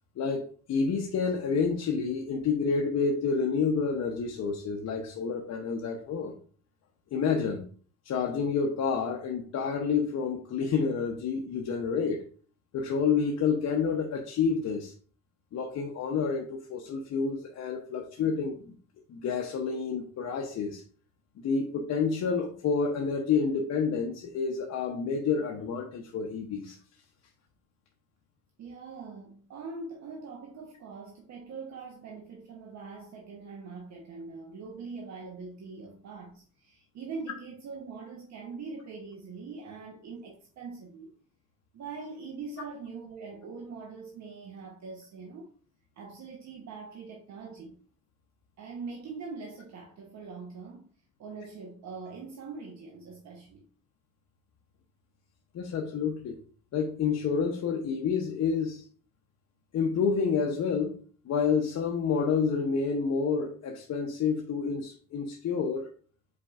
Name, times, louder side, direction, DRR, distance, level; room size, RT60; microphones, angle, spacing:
voice 1, 0.2-6.3 7.1-7.7 8.0-12.2 12.7-14.9 15.5-18.7 19.1-20.8 21.4-26.8 55.5-56.4 56.7-58.8 59.7-61.0 61.2-65.9, left 5 dB, 60° left, 0.7 m, -29 dB
voice 2, 28.6-41.1 41.7-45.5 46.0-47.8 48.6-50.9 51.2-53.7, right 4 dB, 65° right, 0.9 m, -42 dB
5.0 x 4.2 x 2.3 m
cardioid pair, 90°, 30 cm